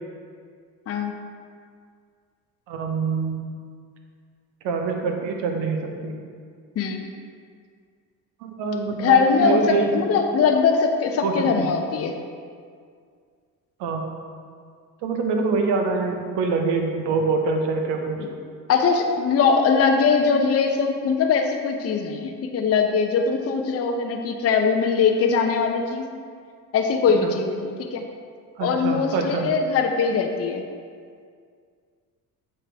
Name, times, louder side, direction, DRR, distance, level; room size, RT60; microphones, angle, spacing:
voice 1, 2.7-3.4 4.6-6.1 8.4-10.0 11.2-11.7 13.8-14.0 15.0-18.2 27.2-27.3 28.6-29.5, right 4 dB, 55° right, 3 dB, 1.0 m, -25 dB
voice 2, 6.8-7.1 9.0-12.2 18.7-26.1 26.7-28.0 28.6-30.6, left 5 dB, 30° left, 4 dB, 0.6 m, -21 dB
7.3 x 4.5 x 3.4 m, 2.1 s
hypercardioid pair, 55°, 50 cm